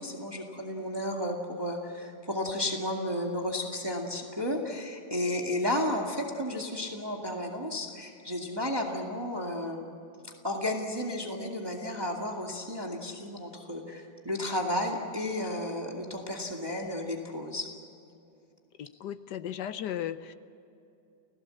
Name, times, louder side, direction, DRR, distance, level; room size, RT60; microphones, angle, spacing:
voice 1, 0.0-9.8 10.4-17.7, left 1 dB, 10° right, 1 dB, 2.0 m, -33 dB
voice 2, 18.8-20.3, left 10 dB, 65° left, 13 dB, 1.2 m, -36 dB
29.5 x 17.0 x 7.8 m, 2.7 s
omnidirectional pair, 2.1 m